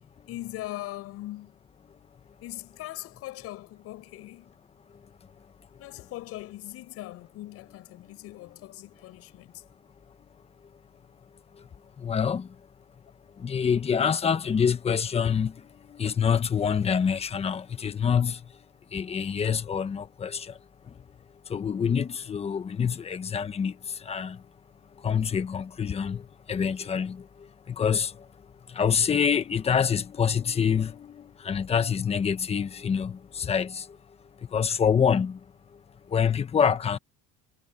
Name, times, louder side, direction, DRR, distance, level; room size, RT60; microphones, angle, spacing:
voice 1, 0.3-1.5 2.4-4.5 5.8-9.6, left 16 dB, 50° left, 7.2 m, -40 dB
voice 2, 12.0-12.5 13.4-15.5 15.9-18.4 18.9-20.5 21.5-23.7 24.0-24.4 25.0-26.2 26.5-27.2 27.7-28.1 28.7-33.8 34.5-35.4 36.1-37.0, left 7 dB, 20° left, 1.2 m, -26 dB
cardioid pair, 145°, 31 cm